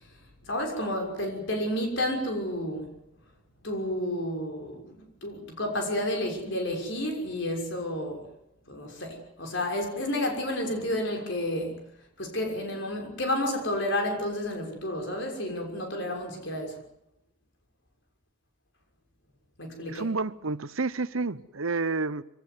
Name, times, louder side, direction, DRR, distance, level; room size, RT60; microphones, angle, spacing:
voice 1, 0.4-2.9 3.6-8.2 8.7-11.8 12.2-16.8 19.6-20.1, left 1 dB, 60° left, 6.2 m, -31 dB
voice 2, 19.9-22.2, right 3 dB, 80° right, 0.9 m, -30 dB
25.0 x 17.5 x 9.7 m
head